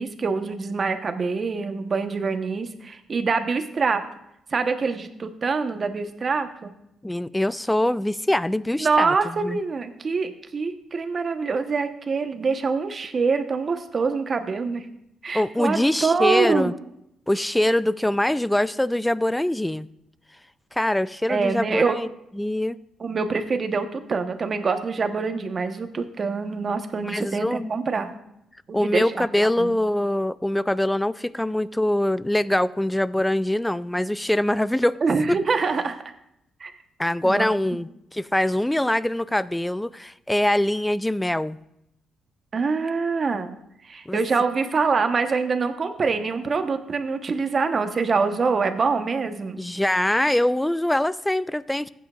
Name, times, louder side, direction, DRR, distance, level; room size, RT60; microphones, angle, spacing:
voice 1, 0.0-4.0 4.5-6.7 8.8-14.9 15.2-16.8 21.3-21.9 23.0-28.1 28.7-29.3 29.6-29.8 35.0-35.9 36.6-36.7 37.2-37.8 42.5-43.6 43.8-49.6, right 4 dB, 40° right, 8 dB, 1.0 m, -25 dB
voice 2, 7.0-9.1 9.4-9.6 15.3-16.7 17.3-19.9 20.7-22.1 22.4-22.8 27.0-27.7 28.7-35.0 35.3-35.4 37.0-41.6 44.1-44.2 49.6-51.9, left 1 dB, 5° left, 18 dB, 0.3 m, -23 dB
15.0 x 9.1 x 2.4 m, 0.80 s
cardioid pair, 90°, 0 cm